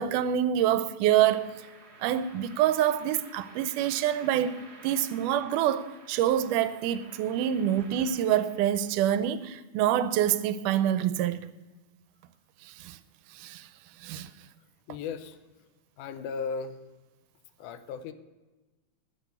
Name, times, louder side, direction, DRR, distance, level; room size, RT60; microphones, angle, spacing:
voice 1, 0.0-1.5 2.0-4.6 4.8-11.4 12.6-13.0 13.3-13.7 14.0-14.3, right 11 dB, 90° right, 2.2 m, -26 dB
sound 1, 1.1-9.2, right 3 dB, 40° right, 1.8 m, -52 dB
voice 2, 14.9-15.4 16.0-16.8 17.6-18.1, left 5 dB, 80° left, 2.2 m, -36 dB
10.5 x 10.0 x 6.8 m
omnidirectional pair, 3.6 m